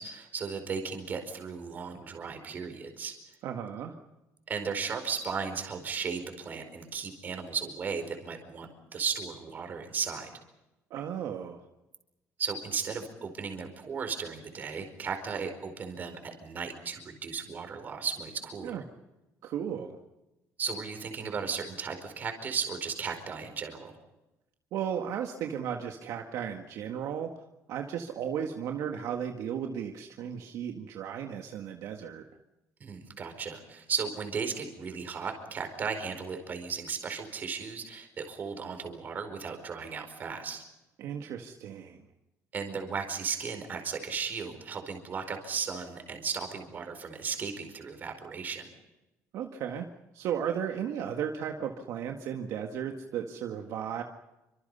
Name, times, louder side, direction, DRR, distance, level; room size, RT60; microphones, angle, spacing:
voice 1, 0.0-3.1 4.5-10.3 12.4-18.8 20.6-23.9 32.8-40.6 42.5-48.7, right 5 dB, 30° right, 6 dB, 4.8 m, -35 dB
voice 2, 3.4-3.9 10.9-11.6 18.6-18.8 19.4-20.0 24.7-27.3 27.7-32.2 41.0-42.1 49.3-49.9 50.1-54.0, right 8 dB, 65° right, 3 dB, 1.9 m, -35 dB
29.0 x 25.5 x 5.6 m, 0.99 s
cardioid pair, 175°, 6 cm